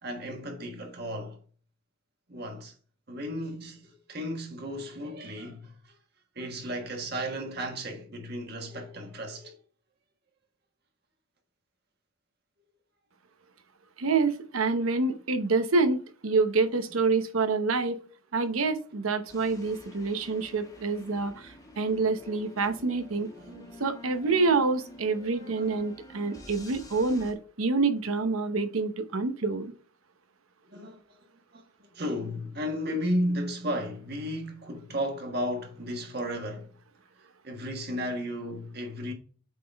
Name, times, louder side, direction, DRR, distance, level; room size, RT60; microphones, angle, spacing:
voice 1, 0.0-1.4 2.3-2.7 3.1-6.0 6.3-9.6 23.4-23.8 25.4-25.7 30.7-31.2 31.5-31.6 31.9-36.7 37.4-39.1, equal, 50° right, 1.4 m, -34 dB
voice 2, 14.0-18.0 18.3-23.3 23.8-29.7, right 3 dB, 85° right, 0.9 m, -27 dB
sound 1, 19.3-27.3, left 2 dB, 15° left, 1.2 m, -49 dB
8.2 x 3.8 x 3.5 m
head